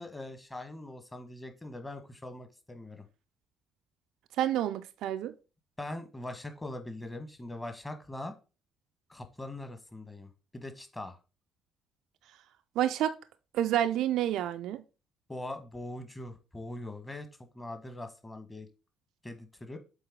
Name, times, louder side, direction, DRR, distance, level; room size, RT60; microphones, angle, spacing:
voice 1, 0.0-3.1 5.8-8.3 9.1-11.2 15.3-17.3 17.5-18.7 19.2-19.8, left 1 dB, 15° left, 1.4 m, -42 dB
voice 2, 4.4-5.3 12.8-13.2 13.5-14.8, right 12 dB, 60° right, 0.4 m, -29 dB
7.2 x 4.5 x 3.6 m
figure-of-eight pair, 45°, 0 cm